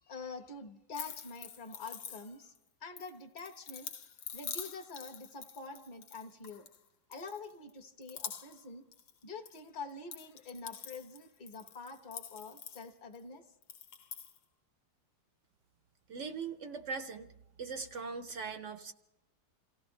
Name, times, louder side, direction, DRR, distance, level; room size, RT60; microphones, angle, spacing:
voice 1, 0.1-2.5 2.8-3.9 4.3-6.7 7.1-8.8 9.2-13.4, left 4 dB, 30° left, 5 dB, 1.1 m, -46 dB
sound 1, 0.9-2.6 3.0-6.8 7.1-7.7 8.0-8.7 8.9-9.6 9.9-13.2 13.6-14.4, left 8 dB, 90° left, 1.7 m, -46 dB
voice 2, 16.1-17.3 17.6-18.9, right 5 dB, 55° right, 8 dB, 0.8 m, -40 dB
28.0 x 16.0 x 3.2 m, 0.89 s
omnidirectional pair, 2.0 m